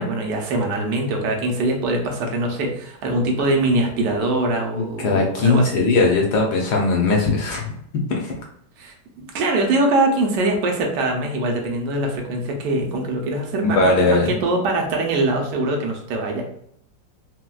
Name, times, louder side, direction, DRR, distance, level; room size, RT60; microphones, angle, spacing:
voice 1, 0.0-5.9 8.8-16.4, right 2 dB, 70° right, 1 dB, 1.2 m, -23 dB
voice 2, 4.7-7.7 8.2-8.3 13.8-14.3, left 3 dB, 70° left, 0 dB, 1.1 m, -19 dB
4.0 x 2.1 x 2.2 m, 0.70 s
omnidirectional pair, 2.0 m